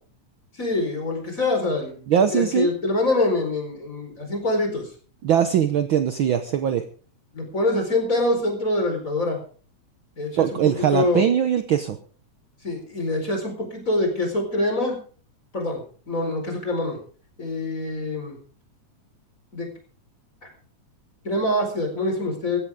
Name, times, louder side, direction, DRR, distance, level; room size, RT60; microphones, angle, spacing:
voice 1, 0.5-4.9 7.3-9.4 10.2-11.2 12.6-15.0 15.5-17.0 17.4-18.4 19.5-19.7 21.2-22.6, left 2 dB, 25° left, 2 dB, 4.7 m, -25 dB
voice 2, 2.1-2.7 5.2-6.8 10.4-12.0, right 9 dB, 75° right, 9 dB, 1.1 m, -21 dB
16.0 x 15.5 x 3.6 m, 0.40 s
omnidirectional pair, 3.5 m